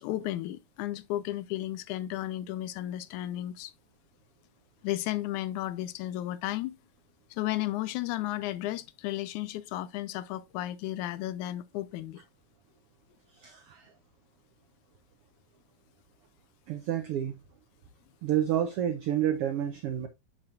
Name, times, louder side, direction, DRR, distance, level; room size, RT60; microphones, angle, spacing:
voice 1, 0.0-3.7 4.8-6.8 7.3-12.2, left 14 dB, 85° left, 2.0 m, -33 dB
voice 2, 13.3-13.9 16.7-17.4 18.2-20.1, right 10 dB, 90° right, 1.2 m, -29 dB
7.5 x 6.7 x 2.4 m
omnidirectional pair, 3.5 m